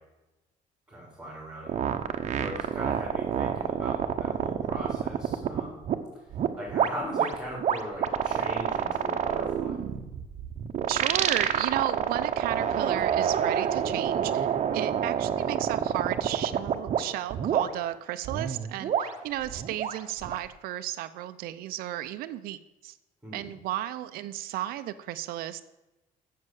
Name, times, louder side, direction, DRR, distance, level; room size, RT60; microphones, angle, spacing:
voice 1, 0.9-1.9 2.3-5.8 6.5-9.8 23.2-23.5, equal, 5° right, -6 dB, 4.3 m, -39 dB
sound 1, 1.7-5.9 6.3-17.0 17.3-17.7 18.2-20.5, right 8 dB, 50° right, 1.0 m, -27 dB
voice 2, 10.9-14.5 14.7-23.0 23.3-25.6, right 13 dB, 85° right, 12 dB, 0.6 m, -34 dB
7.5 x 7.5 x 8.0 m, 1.0 s
cardioid pair, 110°, 15 cm